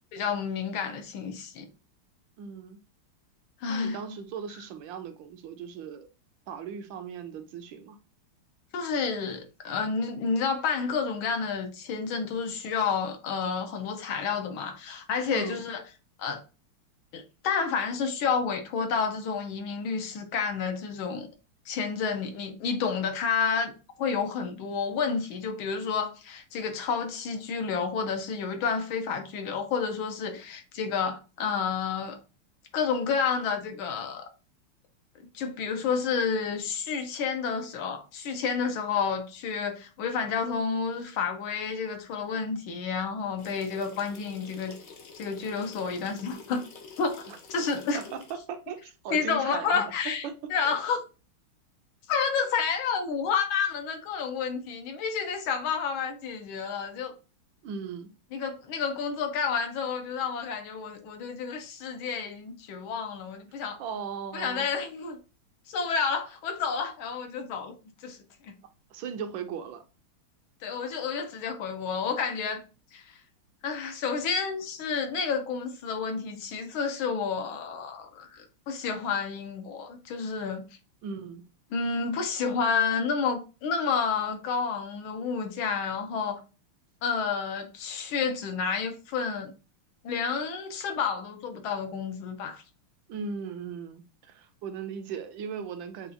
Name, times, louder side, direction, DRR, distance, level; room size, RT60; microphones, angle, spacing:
voice 1, 0.1-1.7 3.6-4.0 8.7-15.8 16.2-16.4 17.1-21.3 21.7-23.7 24.0-32.2 32.7-34.3 35.3-44.7 45.2-46.6 47.0-47.2 47.5-48.0 49.1-51.0 52.1-57.1 58.3-63.8 64.3-65.2 65.7-67.7 68.0-68.2 68.4-68.5 70.6-72.6 72.9-73.2 73.6-80.6 81.7-86.4 87.0-89.5 90.0-92.6, left 5 dB, 75° left, 1.6 m, -30 dB
voice 2, 2.4-2.8 3.7-6.1 6.5-8.0 15.3-15.6 47.3-47.4 47.9-49.8 50.2-50.4 50.6-50.7 57.6-58.1 63.8-64.7 68.9-69.8 81.0-81.5 93.1-96.1, right 6 dB, 75° right, 1.3 m, -38 dB
sound 1, 43.4-48.3, left 4 dB, 60° left, 0.9 m, -48 dB
6.7 x 2.4 x 2.8 m
omnidirectional pair, 2.3 m